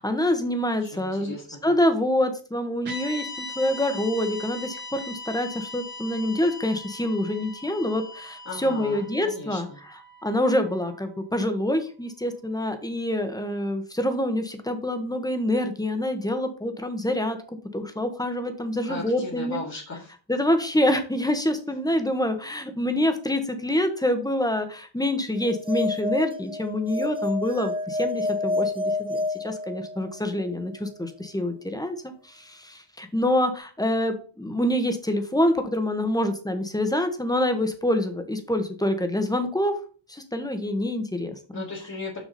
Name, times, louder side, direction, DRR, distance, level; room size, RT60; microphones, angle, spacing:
voice 1, 0.0-1.3 1.6-9.7 10.2-17.4 17.7-19.6 20.3-39.8 40.1-41.6, left 1 dB, 10° left, 7 dB, 1.3 m, -26 dB
voice 2, 0.8-1.8 8.5-9.8 18.8-20.1 41.5-42.2, left 3 dB, 35° left, -4 dB, 2.2 m, -37 dB
sound 1, 2.9-11.2, left 2 dB, 50° right, 2.1 m, -40 dB
sound 2, 25.4-30.2, left 2 dB, 10° right, 0.9 m, -29 dB
6.3 x 6.1 x 4.2 m, 0.39 s
wide cardioid pair, 95°, 47 cm